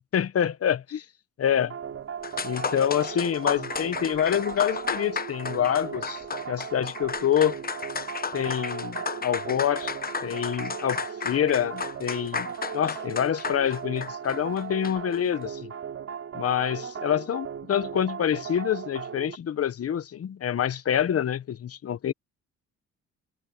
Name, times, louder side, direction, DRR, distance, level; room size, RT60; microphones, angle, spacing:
voice 1, 0.1-1.0 1.4-1.7 2.4-6.2 6.5-7.6 8.3-9.9 10.2-12.5 12.7-15.7 16.3-22.1, left 9 dB, 50° left, 1.2 m, -26 dB
sound 1, 1.5-19.4, right 7 dB, 50° right, 2.8 m, -37 dB
sound 2, 1.9-2.0 2.2-15.2, left 5 dB, 30° left, 1.1 m, -34 dB
cardioid pair, 90°, 30 cm